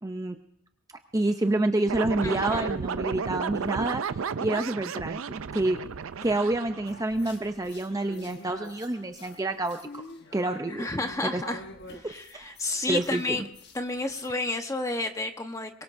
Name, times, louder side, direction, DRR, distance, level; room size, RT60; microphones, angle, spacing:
voice 1, 0.0-0.4 1.1-4.0 4.4-5.8 6.2-10.0 10.3-10.8 11.3-11.4 12.0-12.6 12.9-13.5, right 2 dB, 15° right, 6 dB, 0.5 m, -28 dB
sound 1, 1.9-7.4, right 6 dB, 80° right, 0.5 m, -33 dB
voice 2, 2.2-2.7 10.7-11.6 12.0-13.4 13.7-15.8, left 2 dB, 15° left, 6 dB, 1.0 m, -31 dB
sound 2, 6.9-14.3, left 2 dB, 55° left, 1.4 m, -46 dB
23.5 x 22.0 x 2.6 m, 0.75 s
head